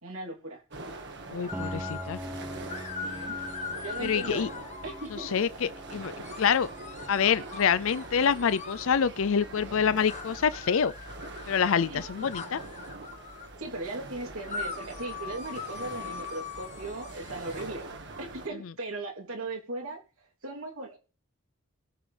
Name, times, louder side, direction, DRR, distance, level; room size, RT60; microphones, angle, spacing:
voice 1, 0.0-0.6 3.0-3.4 3.8-4.5 4.8-5.3 11.8-12.4 13.6-17.8 18.2-20.0 20.4-21.0, right 2 dB, 75° right, 3.1 m, -38 dB
sound 1, 0.7-18.5, right 2 dB, 50° right, 1.7 m, -44 dB
voice 2, 1.3-2.2 4.0-4.5 5.3-6.1 6.4-6.7 7.1-10.9 11.5-12.6, left 7 dB, 60° left, 0.5 m, -26 dB
sound 2, 1.5-2.2 2.7-5.5 6.2-8.9 10.1-13.5 14.5-17.6, left 5 dB, 30° left, 1.2 m, -41 dB
Piano, 1.5-11.1, equal, 5° right, 0.7 m, -44 dB
20.5 x 7.5 x 3.4 m
head